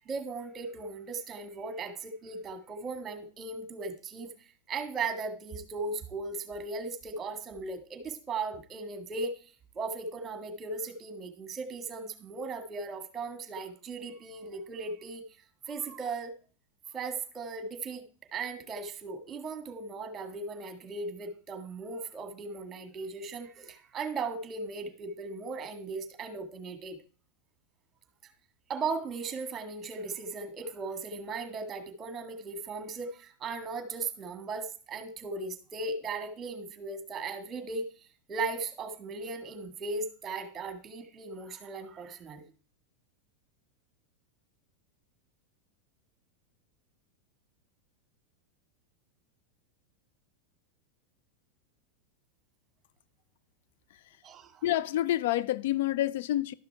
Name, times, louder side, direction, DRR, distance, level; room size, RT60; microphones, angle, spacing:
voice 1, 0.0-4.3 4.7-15.2 15.7-16.3 16.9-27.0 28.2-28.3 28.7-37.9 38.3-42.5 54.2-54.6, right 3 dB, 25° right, 1.8 m, -37 dB
voice 2, 54.6-56.5, left 14 dB, 70° left, 0.4 m, -28 dB
12.0 x 5.9 x 4.6 m
hypercardioid pair, 105°, 0 cm